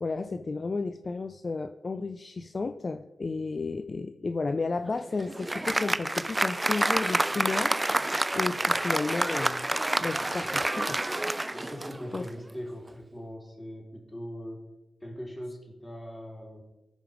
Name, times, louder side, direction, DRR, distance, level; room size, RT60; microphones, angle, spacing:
voice 1, 0.0-7.7 8.3-9.7 10.0-11.0 12.1-12.2, left 3 dB, 50° left, 9 dB, 0.5 m, -32 dB
Applause, 4.9-12.4, right 1 dB, 20° right, 0.3 m, -28 dB
voice 2, 11.5-14.6 15.0-16.6, equal, 15° left, 0 dB, 3.7 m, -41 dB
15.5 x 5.2 x 5.1 m, 0.98 s
cardioid pair, 45°, 0 cm